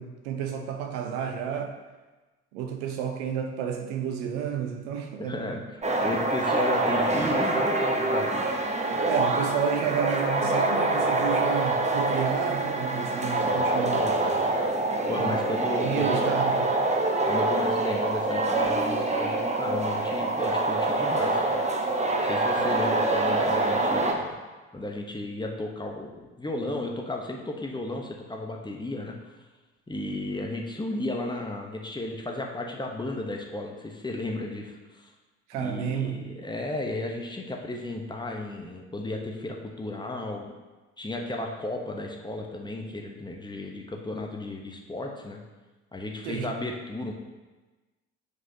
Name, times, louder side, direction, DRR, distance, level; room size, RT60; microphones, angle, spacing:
voice 1, 0.0-1.7 2.5-5.6 9.1-14.2 15.2-15.4 15.8-16.8 22.6-22.7 35.5-36.4 46.2-46.6, right 8 dB, 65° right, 4 dB, 0.8 m, -31 dB
voice 2, 5.2-8.3 13.9-14.4 15.1-16.3 17.3-21.6 22.2-24.4 24.7-29.2 29.9-35.1 35.6-40.6 41.0-45.4 45.9-47.1, left 2 dB, 10° left, 1 dB, 1.0 m, -34 dB
sound 1, 5.8-24.1, right 2 dB, 20° right, 0.9 m, -25 dB
7.9 x 4.9 x 2.8 m, 1.2 s
figure-of-eight pair, 50°, 37 cm